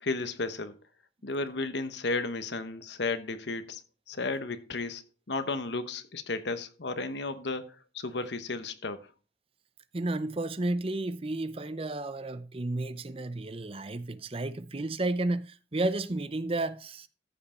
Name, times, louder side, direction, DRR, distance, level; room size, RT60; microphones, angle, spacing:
voice 1, 0.0-0.7 1.2-3.8 4.1-5.0 5.3-9.1, left 3 dB, 70° left, 1.0 m, -33 dB
voice 2, 9.9-17.1, right 2 dB, 30° right, 0.6 m, -32 dB
14.0 x 5.6 x 4.3 m
head